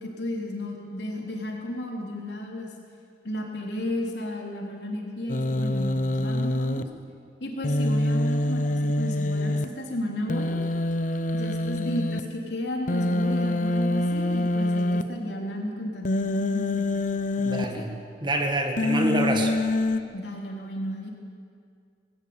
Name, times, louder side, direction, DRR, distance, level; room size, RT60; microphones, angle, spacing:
voice 1, 0.0-2.7 3.2-6.8 7.4-10.5 11.3-16.9 17.4-17.9 20.1-21.1, left 1 dB, 70° left, 0 dB, 3.7 m, -33 dB
Human voice, 5.3-6.8 7.6-9.6 10.3-12.2 12.9-15.0 16.0-17.6 18.8-20.0, left 2 dB, 45° left, 0.8 m, -25 dB
voice 2, 17.4-17.9 18.2-19.5, right 1 dB, 25° right, 4 dB, 1.7 m, -26 dB
20.0 x 15.5 x 8.9 m, 2.2 s
head